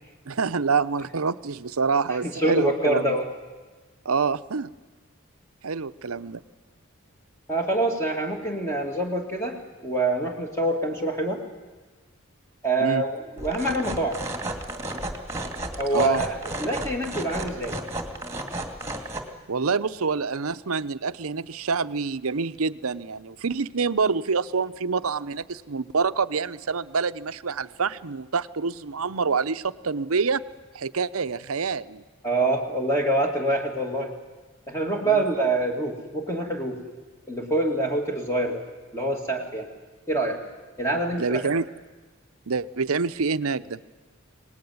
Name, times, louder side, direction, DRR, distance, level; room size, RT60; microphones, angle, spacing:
voice 1, 0.3-3.2 4.0-4.7 5.6-6.4 12.8-13.0 15.9-16.2 19.5-30.4 30.7-32.0 35.0-35.2 41.2-41.7 42.5-43.8, right 5 dB, 85° right, 13 dB, 0.8 m, -26 dB
voice 2, 2.2-3.3 7.5-9.6 9.8-11.4 12.6-14.2 15.8-16.3 16.6-17.8 32.2-34.1 34.7-36.8 37.3-38.6 38.9-39.7 40.1-40.4 40.8-41.6, right 2 dB, 15° left, 1 dB, 2.4 m, -25 dB
sound 1, 13.4-19.2, right 1 dB, 15° right, 2.2 m, -33 dB
25.5 x 19.0 x 9.5 m, 1.3 s
head